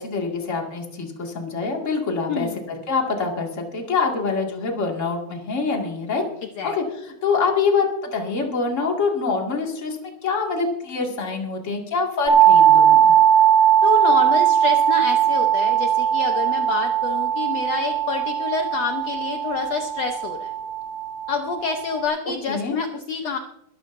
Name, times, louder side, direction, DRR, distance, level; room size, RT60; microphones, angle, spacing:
voice 1, 0.0-6.2 6.6-13.1 22.5-22.7, left 4 dB, 25° left, 0 dB, 2.1 m, -25 dB
voice 2, 2.3-2.6 6.6-6.8 13.8-20.5 21.3-23.4, left 5 dB, 65° left, 4 dB, 1.8 m, -27 dB
sound 1, 12.3-22.0, right 9 dB, 25° right, 2.7 m, -19 dB
23.5 x 13.0 x 2.6 m, 0.84 s
omnidirectional pair, 3.6 m